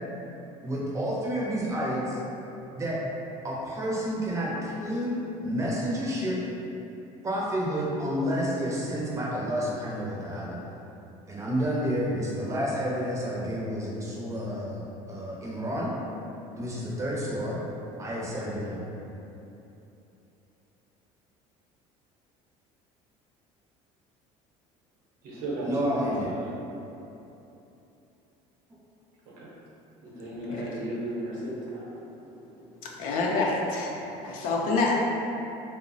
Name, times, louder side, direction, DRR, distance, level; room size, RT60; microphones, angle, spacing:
voice 1, 0.6-2.2 2.7-3.0 3.4-6.4 7.2-10.6 11.3-14.8 15.1-15.9 16.5-17.6 18.0-18.8 25.6-26.3, equal, 20° right, -5 dB, 0.6 m, -30 dB
voice 2, 25.2-26.4 29.3-29.5 30.0-31.9, right 1 dB, 75° right, -6 dB, 0.8 m, -34 dB
voice 3, 33.0-33.9 34.2-35.0, left 3 dB, 70° left, -2 dB, 0.5 m, -26 dB
2.9 x 2.0 x 2.6 m, 2.9 s
cardioid pair, 115°, 14 cm